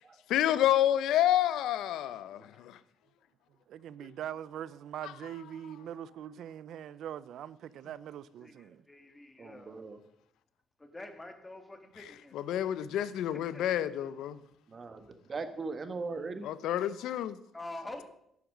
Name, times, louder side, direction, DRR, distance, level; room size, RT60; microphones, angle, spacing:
voice 1, 0.3-2.8 5.0-5.1 12.3-14.4 16.4-17.4, left 12 dB, 85° left, 0.6 m, -29 dB
voice 2, 3.7-8.8, right 10 dB, 75° right, 0.4 m, -42 dB
voice 3, 8.4-9.8 10.9-12.3 13.3-14.1 17.5-18.0, left 2 dB, 20° left, 1.9 m, -46 dB
voice 4, 9.4-10.0 14.7-16.5, right 4 dB, 40° right, 1.3 m, -39 dB
11.0 x 7.2 x 6.1 m
cardioid pair, 90°, 0 cm